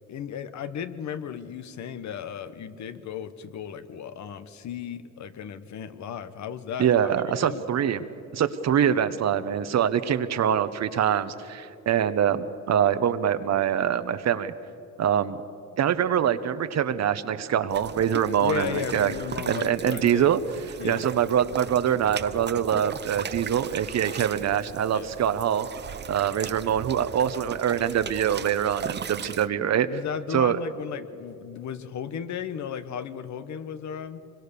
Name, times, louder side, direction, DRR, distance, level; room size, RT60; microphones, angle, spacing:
voice 1, 0.1-7.1 7.4-7.7 18.4-20.3 20.8-21.0 24.9-25.1 29.9-34.2, left 8 dB, 65° left, 12 dB, 1.2 m, -35 dB
voice 2, 6.8-8.0 8.3-14.5 15.0-15.4 15.8-19.1 19.5-20.4 20.8-25.7 26.1-29.9 30.3-30.6, right 9 dB, 60° right, 12 dB, 1.1 m, -24 dB
sound 1, 17.7-29.5, right 7 dB, 35° right, 0.6 m, -38 dB
25.5 x 22.0 x 6.9 m, 3.0 s
cardioid pair, 90°, 30 cm